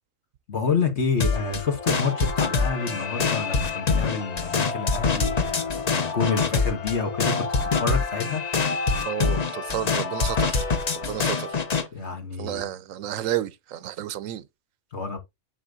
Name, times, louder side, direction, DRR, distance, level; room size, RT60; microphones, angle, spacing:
voice 1, 0.5-7.5 7.8-8.4 11.9-12.7 14.9-15.2, left 5 dB, 60° left, 1.8 m, -28 dB
sound 1, 1.2-11.9, left 4 dB, 35° left, 0.8 m, -25 dB
voice 2, 9.1-10.7 10.9-11.6 12.4-14.4, right 11 dB, 85° right, 1.0 m, -31 dB
7.3 x 6.5 x 2.6 m
omnidirectional pair, 1.3 m